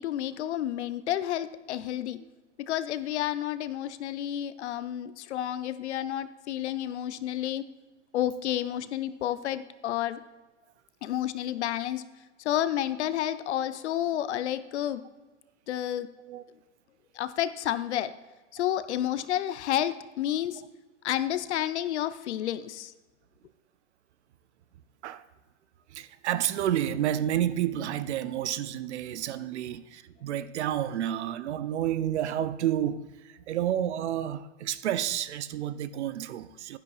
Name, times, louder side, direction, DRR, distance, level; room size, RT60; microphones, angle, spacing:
voice 1, 0.0-2.2 2.6-7.6 8.1-10.2 11.0-12.0 12.4-15.0 15.7-16.1 17.1-18.1 18.5-20.6 21.0-22.9, left 12 dB, 60° left, 0.6 m, -30 dB
voice 2, 25.9-36.8, right 11 dB, 60° right, 0.6 m, -30 dB
11.5 x 9.8 x 2.4 m
hypercardioid pair, 150°, 39 cm